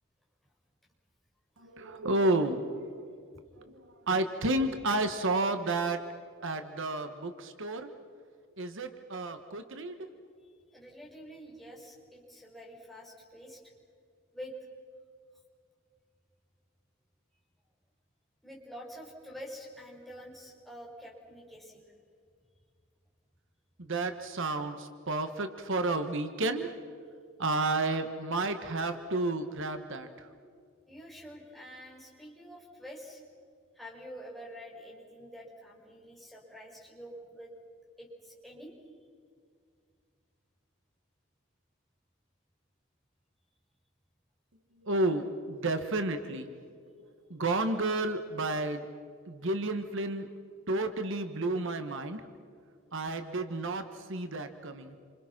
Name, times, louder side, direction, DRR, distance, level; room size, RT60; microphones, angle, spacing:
voice 1, 1.6-3.0 3.7-6.0 6.4-7.9 8.6-9.9 23.8-26.7 27.4-30.3 44.8-46.5 47.3-48.8 49.3-50.3 50.7-52.2 52.9-55.0, right 2 dB, 65° right, 8 dB, 1.4 m, -31 dB
voice 2, 10.4-13.6 14.3-14.5 18.4-21.9 30.9-33.2 33.7-37.5 38.0-38.8, equal, ahead, -4 dB, 5.7 m, -47 dB
28.0 x 26.5 x 6.0 m, 2.2 s
head